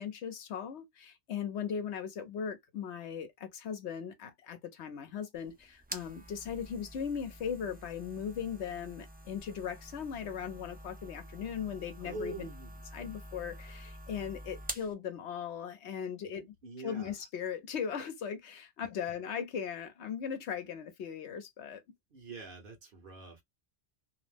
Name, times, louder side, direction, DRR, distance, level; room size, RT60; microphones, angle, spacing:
voice 1, 0.0-12.5 12.9-16.5 16.8-21.8, left 7 dB, 85° left, 1.0 m, -38 dB
sound 1, 5.3-14.9, right 1 dB, 15° right, 0.4 m, -47 dB
voice 2, 12.0-12.8 16.4-17.1 22.1-23.4, right 3 dB, 55° right, 1.1 m, -44 dB
2.7 x 2.0 x 3.2 m
omnidirectional pair, 1.1 m